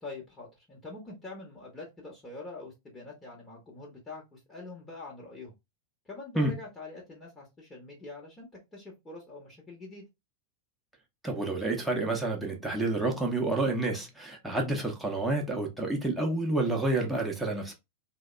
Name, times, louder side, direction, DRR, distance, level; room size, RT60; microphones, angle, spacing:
voice 1, 0.0-5.5 6.1-10.1, left 2 dB, 15° left, 1.1 m, -44 dB
voice 2, 11.2-17.7, right 2 dB, 5° right, 0.9 m, -29 dB
3.3 x 2.1 x 2.4 m
figure-of-eight pair, 90°, 0 cm